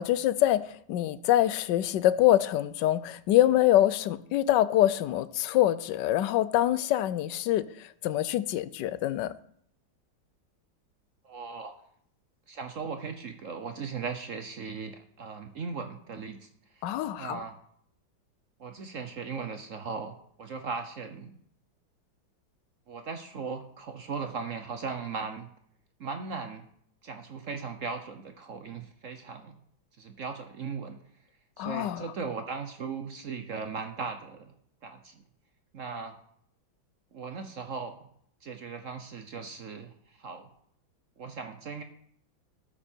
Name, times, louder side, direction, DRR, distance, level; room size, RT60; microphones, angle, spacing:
voice 1, 0.0-7.6 8.0-9.3 16.8-17.4 31.6-32.0, left 13 dB, 70° left, 1.2 m, -25 dB
voice 2, 11.2-11.7 12.5-17.6 18.6-21.3 22.9-25.5 26.0-26.7 27.0-29.6 30.0-31.0 31.6-34.5 34.8-35.2 35.7-36.1 37.1-38.1 38.4-40.5 41.2-41.8, right 5 dB, 55° right, 0.9 m, -38 dB
13.0 x 9.1 x 4.5 m
omnidirectional pair, 2.1 m